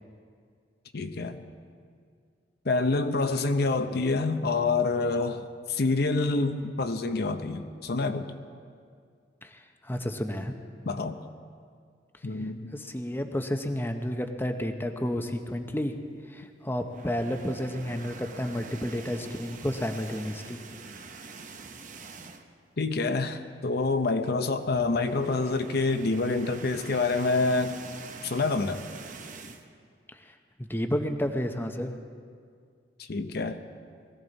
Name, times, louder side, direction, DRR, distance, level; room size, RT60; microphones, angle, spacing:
voice 1, 0.9-1.4 2.6-8.3 10.9-11.2 12.2-12.7 22.8-27.8 28.2-28.8 33.0-33.6, left 3 dB, 60° left, 8 dB, 0.7 m, -27 dB
voice 2, 9.4-10.5 12.7-16.0 16.3-20.6 30.1-30.2 30.6-31.9, equal, 10° left, 5 dB, 0.8 m, -31 dB
sound 1, 16.8-22.7 23.0-23.2 23.5-23.6 24.6-29.7, right 4 dB, 45° right, 0.9 m, -45 dB
20.5 x 15.5 x 4.0 m, 2.1 s
head